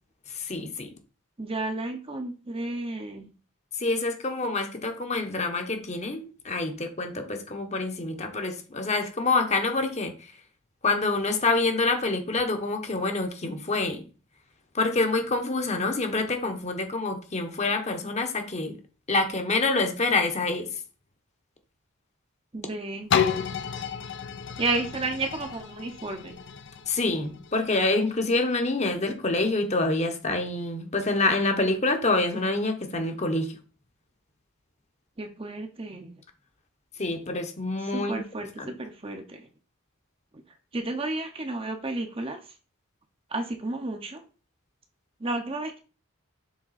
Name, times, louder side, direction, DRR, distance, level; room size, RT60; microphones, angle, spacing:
voice 1, 0.3-0.9 3.7-10.3 10.8-14.0 14.7-18.8 19.1-20.8 26.9-33.6 37.0-38.7, left 3 dB, 30° left, 0.9 m, -27 dB
voice 2, 1.4-3.3 22.5-23.1 24.6-26.4 35.2-36.1 37.9-39.4 40.7-42.4 43.3-44.2 45.2-45.8, right 2 dB, 25° right, 0.7 m, -32 dB
sound 1, 23.1-28.8 29.4-29.5, left 7 dB, 55° left, 0.5 m, -31 dB
7.1 x 3.6 x 4.1 m
head